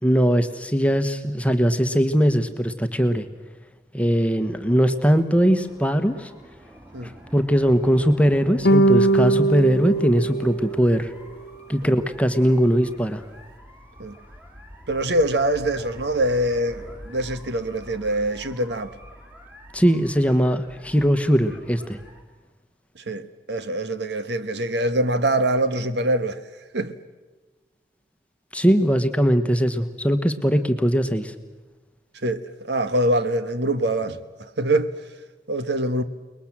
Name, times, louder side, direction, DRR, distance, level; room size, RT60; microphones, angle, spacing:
voice 1, 0.0-3.3 3.9-6.3 7.0-11.1 11.7-13.2 19.7-22.0 28.5-31.3, equal, 5° left, 1.2 m, -20 dB
sound 1, 4.5-22.2, equal, 10° right, 2.7 m, -46 dB
sound 2, 8.6-11.2, right 2 dB, 60° left, 0.7 m, -20 dB
voice 2, 14.9-18.9 23.1-26.4 26.7-27.0 32.2-34.2 34.6-35.0 35.5-36.0, right 1 dB, 70° right, 1.3 m, -24 dB
29.5 x 21.0 x 7.4 m
head